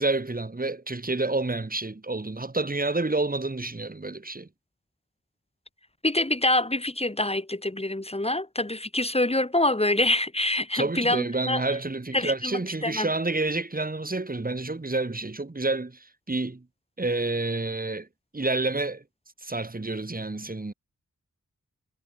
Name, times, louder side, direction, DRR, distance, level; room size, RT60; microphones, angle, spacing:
voice 1, 0.0-4.5 10.7-16.6 17.0-18.1 18.3-19.0 19.4-20.7, right 2 dB, 25° right, 2.6 m, -29 dB
voice 2, 6.0-11.6 12.1-13.1, left 1 dB, 20° left, 3.2 m, -26 dB
wide cardioid pair, 95°, 32 cm